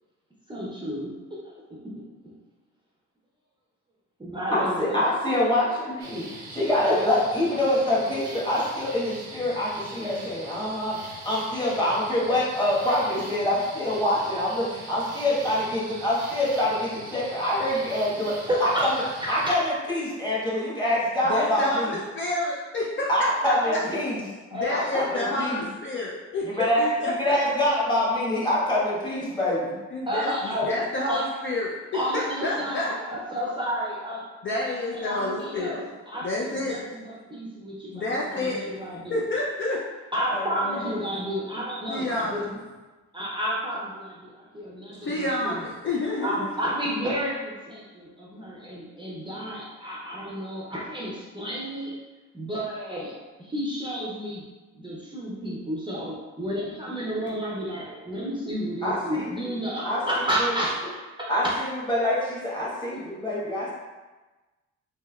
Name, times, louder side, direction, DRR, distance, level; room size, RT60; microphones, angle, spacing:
voice 1, 0.5-1.9 4.2-5.0 6.9-7.0 18.5-19.6 23.1-23.2 23.6-24.2 24.5-25.4 30.1-31.2 31.9-34.2 34.7-39.3 40.1-42.6 43.1-43.9 44.6-45.6 46.2-51.9 52.3-54.4 54.7-61.5, equal, 15° right, -5 dB, 0.6 m, -31 dB
voice 2, 4.5-11.0 11.2-22.0 23.1-24.3 24.7-25.6 26.4-29.7 40.3-41.0 58.8-59.4 59.8-60.6 61.3-63.7, left 1 dB, 15° left, -6 dB, 1.2 m, -25 dB
sound 1, 6.0-19.6, right 3 dB, 85° right, 0.7 m, -42 dB
voice 3, 21.3-23.5 24.5-27.1 29.9-31.8 32.1-32.9 34.4-35.8 36.2-36.9 37.9-38.6 39.1-39.8 41.9-42.4 45.0-46.4, left 2 dB, 40° left, -4 dB, 0.5 m, -29 dB
3.3 x 3.0 x 2.3 m, 1.2 s
cardioid pair, 90°, 30 cm